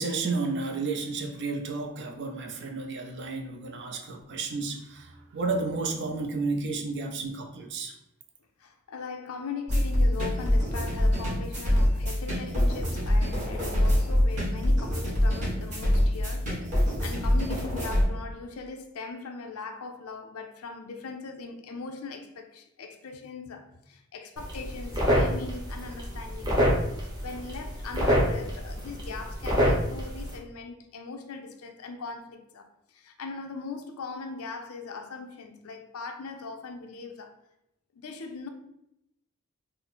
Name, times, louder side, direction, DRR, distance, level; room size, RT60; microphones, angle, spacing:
voice 1, 0.0-7.9, right 3 dB, 55° right, 0.6 m, -32 dB
voice 2, 8.6-26.8 27.2-37.4 37.9-38.5, left 4 dB, 75° left, 0.5 m, -40 dB
sound 1, 9.7-18.0, left 1 dB, 35° right, 1.5 m, -25 dB
sound 2, 24.4-30.4, equal, 20° right, 1.0 m, -27 dB
3.7 x 2.0 x 4.2 m
head